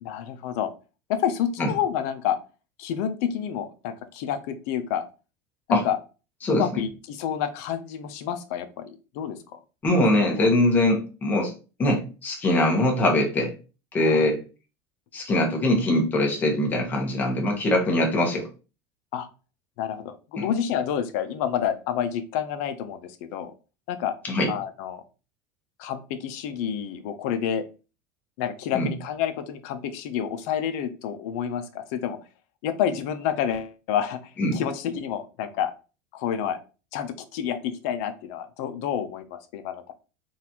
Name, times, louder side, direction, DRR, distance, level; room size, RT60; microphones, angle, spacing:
voice 1, 0.0-0.7 1.1-2.4 2.8-5.1 5.7-6.0 6.5-9.6 10.4-10.5 14.0-14.3 19.1-19.3 19.8-23.5 23.9-24.1 24.5-25.0 25.8-27.6 28.4-32.2 32.6-35.7 36.1-36.6 36.9-39.9, left 9 dB, 65° left, 9 dB, 0.5 m, -29 dB
voice 2, 9.8-11.5 11.8-13.5 13.9-14.4 15.1-18.5 20.4-20.5 24.2-24.5 28.7-28.9 34.4-34.6, left 1 dB, 20° left, 1 dB, 0.9 m, -22 dB
3.9 x 2.5 x 2.8 m, 0.33 s
cardioid pair, 160°, 9 cm